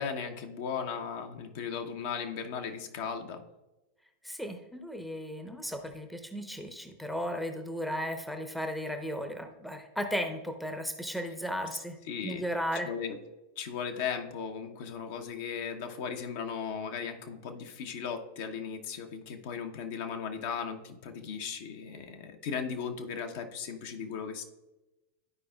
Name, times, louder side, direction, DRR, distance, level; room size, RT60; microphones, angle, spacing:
voice 1, 0.0-3.4 12.0-12.5 12.8-13.2 13.6-24.4, left 6 dB, 50° left, 5 dB, 0.8 m, -37 dB
voice 2, 4.2-12.9, equal, ahead, 6 dB, 0.8 m, -35 dB
12.0 x 4.9 x 2.3 m, 1.0 s
figure-of-eight pair, 90°, 0 cm